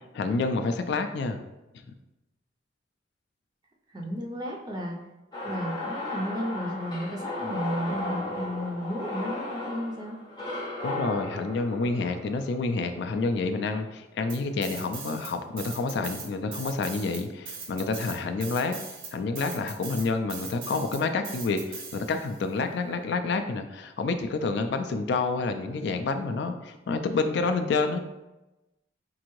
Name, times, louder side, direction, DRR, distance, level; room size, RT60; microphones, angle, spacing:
voice 1, 0.1-1.4 10.8-18.8 19.1-28.0, left 3 dB, 60° left, 8 dB, 0.3 m, -28 dB
voice 2, 3.9-5.0 5.4-10.2, equal, 20° right, 0 dB, 0.4 m, -33 dB
sound 1, 5.3-13.5, left 2 dB, 20° left, 0.7 m, -35 dB
sound 2, 14.3-15.3 15.6-22.4, right 5 dB, 90° right, 0.8 m, -40 dB
4.5 x 2.5 x 3.0 m, 1.0 s
head